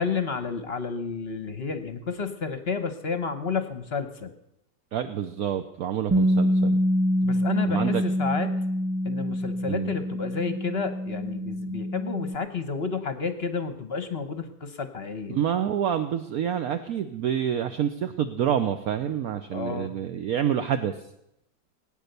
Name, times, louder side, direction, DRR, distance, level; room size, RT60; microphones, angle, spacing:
voice 1, 0.0-4.3 7.2-8.6 9.0-15.4 19.5-19.9, left 5 dB, 45° left, 10 dB, 1.0 m, -31 dB
voice 2, 4.9-6.8 7.7-8.0 9.7-9.9 15.3-20.9, right 9 dB, 65° right, 9 dB, 1.1 m, -27 dB
Bass guitar, 6.1-12.4, equal, 20° right, 0.4 m, -25 dB
20.0 x 9.2 x 6.7 m, 0.82 s
omnidirectional pair, 1.9 m